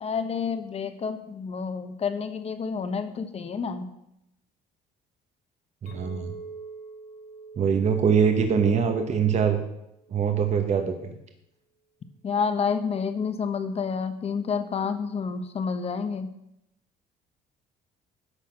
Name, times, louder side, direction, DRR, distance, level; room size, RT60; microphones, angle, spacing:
voice 1, 0.0-3.9 12.2-16.3, left 5 dB, 35° left, 9 dB, 1.0 m, -29 dB
voice 2, 5.8-6.3 7.6-9.6 10.1-11.2, right 6 dB, 40° right, 5 dB, 1.1 m, -23 dB
Chink clink, 5.9-10.3, right 4 dB, 80° left, 4.5 m, -46 dB
11.5 x 4.2 x 7.7 m, 0.82 s
cardioid pair, 110°, 17 cm